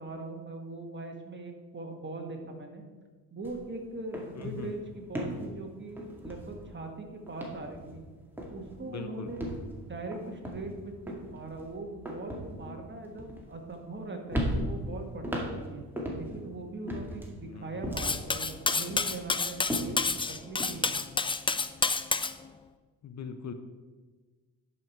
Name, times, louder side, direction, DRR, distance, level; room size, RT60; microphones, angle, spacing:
voice 1, 0.0-2.8 3.3-8.0 8.5-9.4 9.9-15.8 16.2-21.0, right 2 dB, 25° right, 3 dB, 1.7 m, -41 dB
sound 1, 3.4-3.6 3.9-6.9 7.3-8.1 8.4-8.8 9.3-14.0 14.3-16.5 16.9-18.3 18.7-20.7, equal, 5° right, 2.1 m, -37 dB
voice 2, 4.4-4.8 8.8-9.4 17.3-18.0 23.0-23.5, left 5 dB, 45° left, 8 dB, 0.8 m, -41 dB
Cutlery silverware, 18.0-22.3, left 4 dB, 15° left, 0.4 m, -29 dB
10.5 x 5.7 x 4.5 m, 1.4 s
cardioid pair, 80°, 40 cm